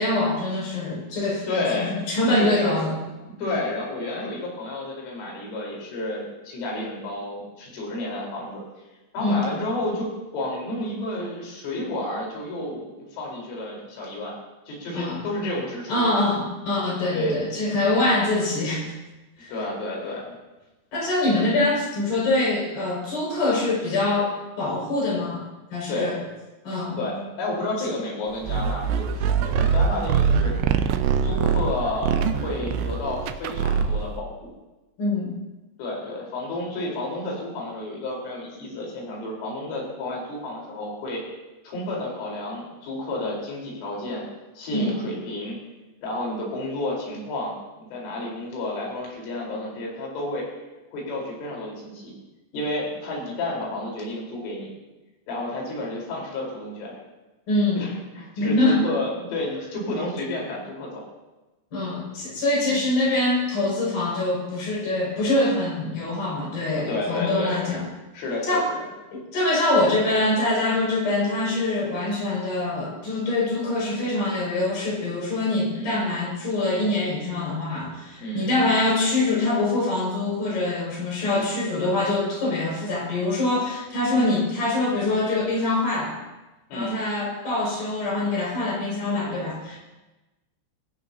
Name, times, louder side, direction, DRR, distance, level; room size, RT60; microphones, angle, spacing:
voice 1, 0.0-1.5 1.8-2.9 9.2-9.6 14.9-15.2 15.9-18.9 19.4-19.5 20.9-25.4 25.7-26.2 26.6-27.0 35.0-35.3 44.7-45.1 57.5-57.9 58.4-58.8 61.7-67.8 68.4-68.7 69.1-86.2 86.7-89.8, left 2 dB, 45° left, -4 dB, 7.8 m, -24 dB
voice 2, 1.5-1.9 2.2-2.8 3.4-8.6 9.1-14.4 14.7-16.1 17.1-17.4 19.5-20.4 25.9-26.1 27.0-30.6 31.2-34.3 35.8-41.3 41.7-44.2 44.6-45.6 46.0-50.5 50.9-52.1 52.5-54.7 55.3-57.0 57.8-61.0 62.6-62.9 66.7-67.6 68.1-68.6 75.7-76.1 78.2-78.5 81.3-81.6 84.1-84.4 86.7-87.0, left 1 dB, 75° left, -3 dB, 6.9 m, -31 dB
sound 1, 28.4-34.2, right 6 dB, 80° right, 2.7 m, -23 dB
22.5 x 17.0 x 2.9 m, 1.1 s
omnidirectional pair, 5.7 m